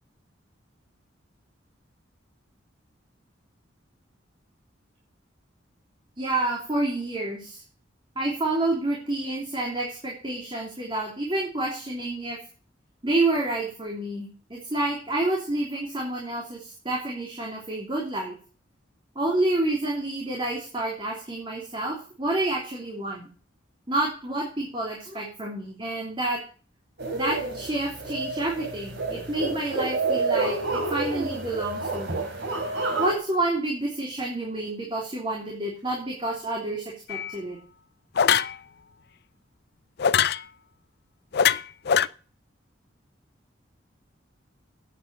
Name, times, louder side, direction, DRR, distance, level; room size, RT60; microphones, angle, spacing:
voice 1, 6.2-7.6 8.1-12.4 13.0-18.3 19.1-23.3 23.9-26.4 27.1-32.3 33.0-37.6, right 2 dB, 25° right, -2 dB, 3.1 m, -29 dB
sound 1, 27.0-33.2, right 3 dB, 65° right, 3.6 m, -29 dB
sound 2, 37.1-37.3 38.2-38.6 40.0-40.4 41.3-42.1, left 8 dB, 60° left, 0.5 m, -21 dB
9.1 x 8.5 x 6.7 m, 0.39 s
head